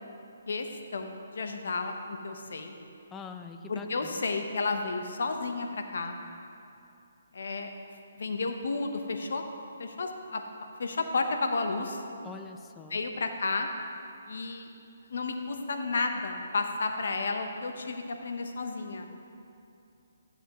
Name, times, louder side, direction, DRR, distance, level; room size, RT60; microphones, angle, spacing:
voice 1, 0.9-2.7 3.7-6.2 7.3-7.7 8.2-9.4 9.8-10.4 10.8-12.0 12.9-13.7 14.3-14.7 15.1-19.1, left 3 dB, 70° left, 5 dB, 0.9 m, -32 dB
voice 2, 3.1-4.3 12.2-13.0, left 5 dB, 15° left, 7 dB, 0.4 m, -44 dB
12.5 x 8.0 x 3.0 m, 2.6 s
hypercardioid pair, 155°, 0 cm